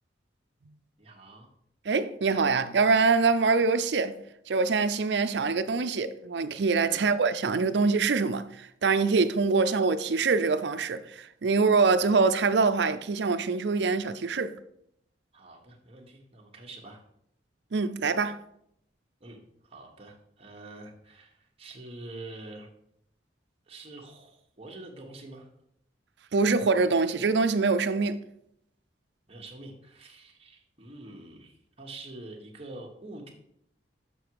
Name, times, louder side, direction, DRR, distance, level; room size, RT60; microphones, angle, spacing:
voice 1, 1.0-1.5 6.9-7.1 15.3-17.0 19.2-19.4 19.6-22.7 23.7-25.5 29.3-33.3, right 2 dB, 35° right, 1.3 m, -46 dB
voice 2, 1.9-4.2 4.5-14.5 17.7-18.4 26.3-28.2, right 4 dB, 70° right, 0.5 m, -24 dB
6.9 x 5.9 x 4.7 m
head